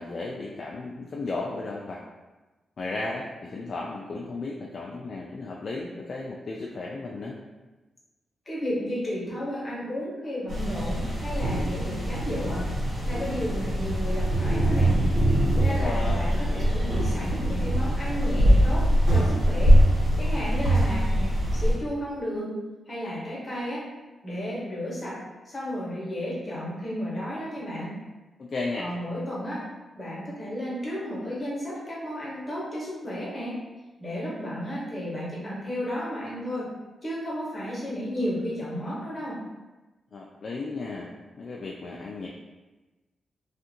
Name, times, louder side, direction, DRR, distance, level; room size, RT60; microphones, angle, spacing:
voice 1, 0.0-2.0 2.8-7.4 15.6-16.2 28.4-28.9 40.1-42.3, left 3 dB, 50° left, -2 dB, 0.3 m, -34 dB
voice 2, 8.5-12.7 13.0-15.0 15.6-19.8 20.2-22.5 22.9-23.9 24.2-25.2 25.5-28.0 28.8-29.6 29.9-33.6 34.0-36.7 37.0-39.4, equal, 30° left, -6 dB, 1.0 m, -33 dB
sound 1, 10.5-21.7, equal, 70° right, 1.2 m, -23 dB
2.5 x 2.5 x 2.8 m, 1.1 s
wide cardioid pair, 115°, 0 cm